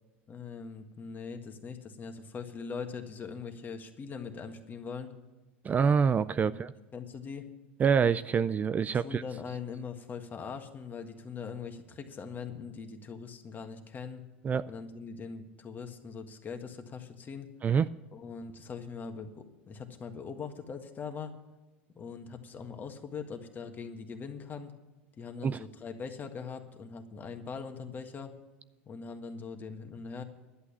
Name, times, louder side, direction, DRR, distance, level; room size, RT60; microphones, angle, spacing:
voice 1, 0.3-5.1 6.5-6.6 6.9-7.4 8.9-14.2 14.6-17.5 18.1-21.3 21.9-24.7 25.2-28.3 28.9-30.2, left 5 dB, 30° left, 6 dB, 1.7 m, -41 dB
voice 2, 5.6-6.7 7.8-9.2 14.4-14.7 17.6-17.9 25.4-25.6, right 6 dB, 25° right, 15 dB, 0.4 m, -26 dB
11.5 x 8.4 x 8.5 m, 1.1 s
hypercardioid pair, 95°, 6 cm